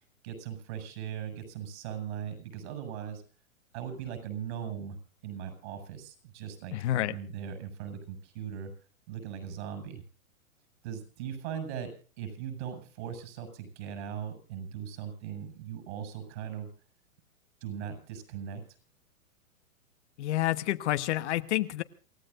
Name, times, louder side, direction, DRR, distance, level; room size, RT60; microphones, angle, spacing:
voice 1, 0.2-3.2 3.7-5.0 5.2-6.7 7.1-8.7 9.1-10.0 10.8-11.9 12.2-16.7 17.6-18.6, right 8 dB, 55° right, 8 dB, 6.8 m, -39 dB
voice 2, 6.7-7.2 20.2-21.8, left 14 dB, 55° left, 11 dB, 1.2 m, -29 dB
28.5 x 15.5 x 2.6 m, 0.39 s
hypercardioid pair, 125°, 41 cm